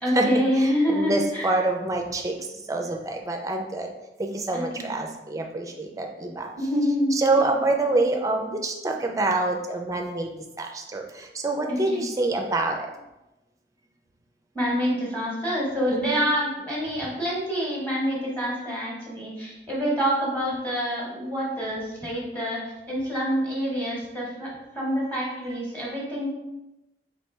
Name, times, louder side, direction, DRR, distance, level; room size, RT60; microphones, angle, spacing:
voice 1, 0.0-1.6 4.5-4.9 6.6-7.4 11.7-12.0 14.5-26.3, equal, 10° left, -5 dB, 1.0 m, -27 dB
voice 2, 0.6-2.4 2.7-3.9 4.2-6.5 7.1-12.9 15.9-16.3, right 2 dB, 20° right, 3 dB, 0.4 m, -26 dB
4.1 x 3.2 x 3.1 m, 0.97 s
head